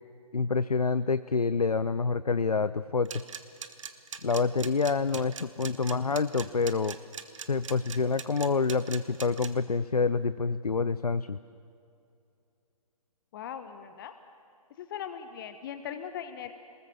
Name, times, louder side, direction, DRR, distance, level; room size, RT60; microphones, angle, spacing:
voice 1, 0.3-3.2 4.2-7.0 7.5-11.4, left 4 dB, 85° left, 15 dB, 0.5 m, -27 dB
sound 1, 3.0-9.5, right 7 dB, 55° right, 1.4 m, -40 dB
voice 2, 13.3-14.1 14.8-16.5, left 9 dB, 35° left, 9 dB, 1.0 m, -39 dB
28.0 x 20.5 x 7.0 m, 2.6 s
figure-of-eight pair, 130°, 19 cm